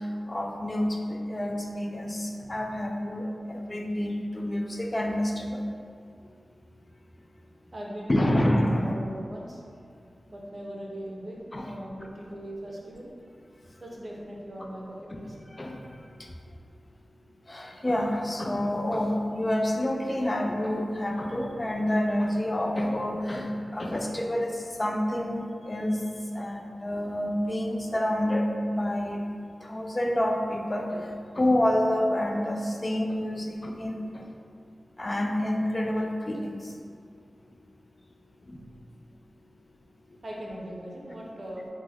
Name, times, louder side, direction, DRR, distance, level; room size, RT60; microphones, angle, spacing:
voice 1, 0.3-5.7 8.1-9.0 11.5-11.7 15.1-15.2 15.6-15.8 17.5-26.0 26.3-29.2 29.6-31.0 31.4-34.2 35.0-36.6 38.5-38.6, left 1 dB, 35° left, 2 dB, 0.4 m, -28 dB
voice 2, 7.7-9.6 10.3-13.1 13.8-15.4 40.2-41.7, equal, 50° right, -2 dB, 0.6 m, -40 dB
3.2 x 2.0 x 3.4 m, 2.2 s
cardioid pair, 45°, 0 cm